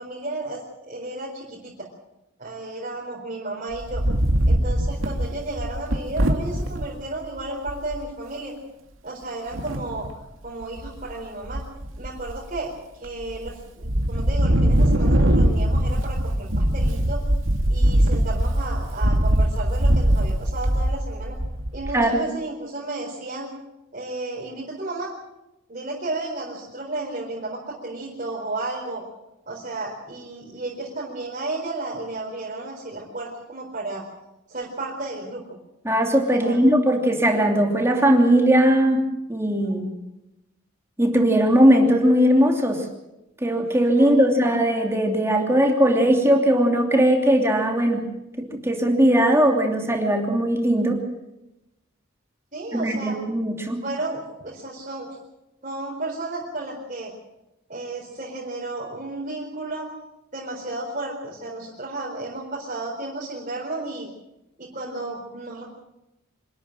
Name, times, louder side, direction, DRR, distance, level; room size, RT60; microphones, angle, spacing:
voice 1, 0.0-1.9 2.4-4.0 4.5-8.5 9.0-10.1 10.4-11.6 12.0-12.7 13.0-17.2 17.7-21.3 21.7-23.5 23.9-25.1 25.7-29.0 29.5-34.0 34.5-35.4 36.4-36.6 39.6-39.7 44.0-44.1 52.5-53.2 53.8-55.2 55.6-57.1 57.7-59.9 60.3-64.1 64.6-65.7, right 2 dB, 40° right, -3 dB, 4.4 m, -33 dB
Wind, 3.7-6.8 7.4-7.5 7.7-8.0 9.5-10.1 10.6-11.1 11.4-12.6 13.1-13.5 13.8-22.0, right 1 dB, 80° right, 2.4 m, -21 dB
voice 2, 35.8-39.0 39.3-39.8 41.0-42.9 43.4-48.1 48.4-51.0 52.7-53.8, equal, 15° right, 2 dB, 2.9 m, -19 dB
26.0 x 13.0 x 9.0 m, 0.95 s
head